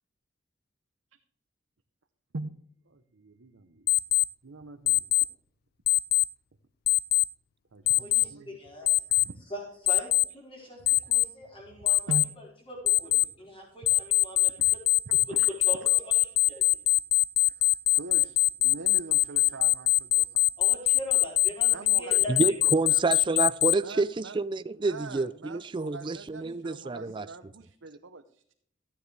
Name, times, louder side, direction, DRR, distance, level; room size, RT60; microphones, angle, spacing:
voice 1, 2.9-3.9 4.4-5.0 7.7-8.6 9.1-9.4 10.8-10.9 12.0-12.2 14.6-14.8 15.1-15.9 17.5-20.5 21.7-23.2 23.8-24.4 24.7-28.5, right 3 dB, 90° right, 0.8 m, -43 dB
Alarm, 3.9-4.2 4.9-5.2 5.9-6.2 6.9-7.2 7.9-8.2 8.9-9.2 9.9-10.2 10.9-11.2 11.9-12.2 12.9-13.2 13.9-23.7, left 17 dB, 50° left, 0.3 m, -22 dB
voice 2, 7.9-8.9 9.5-14.8 15.5-16.8 20.6-22.8, left 1 dB, 25° left, 4.9 m, -42 dB
voice 3, 22.3-27.3, right 3 dB, 25° right, 0.4 m, -28 dB
13.5 x 9.4 x 3.3 m
head